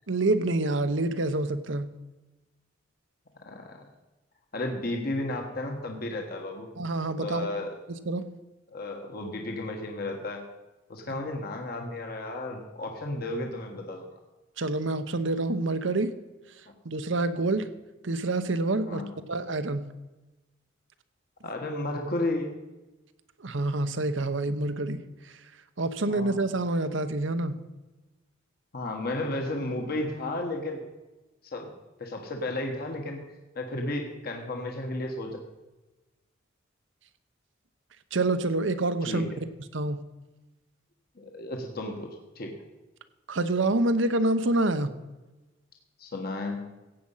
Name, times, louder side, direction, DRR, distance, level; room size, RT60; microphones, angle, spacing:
voice 1, 0.1-1.9 6.8-7.5 8.1-8.3 14.6-16.1 16.8-17.7 18.0-19.0 19.3-19.8 23.4-25.0 25.8-27.6 38.1-39.3 39.7-40.0 43.3-44.9, right 2 dB, 70° right, 11 dB, 0.9 m, -27 dB
voice 2, 3.4-3.8 4.5-6.7 7.2-7.7 8.7-10.5 10.9-14.1 18.8-19.1 21.4-22.6 26.1-26.5 28.7-30.8 31.5-31.7 32.0-35.4 39.0-39.4 41.2-42.1 42.3-42.6 46.0-46.8, left 2 dB, 50° left, 2 dB, 1.3 m, -33 dB
15.5 x 8.6 x 5.6 m, 1.1 s
head